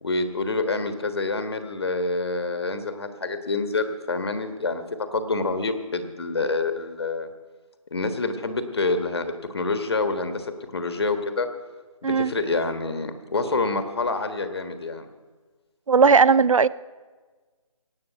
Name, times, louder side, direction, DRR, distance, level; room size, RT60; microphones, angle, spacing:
voice 1, 0.0-7.3 7.9-10.5 10.7-11.5 12.0-15.1, left 3 dB, 45° left, 8 dB, 1.3 m, -27 dB
voice 2, 15.9-16.7, right 5 dB, 65° right, 20 dB, 0.5 m, -17 dB
17.5 x 7.6 x 9.1 m, 1.4 s
figure-of-eight pair, 170°, 18 cm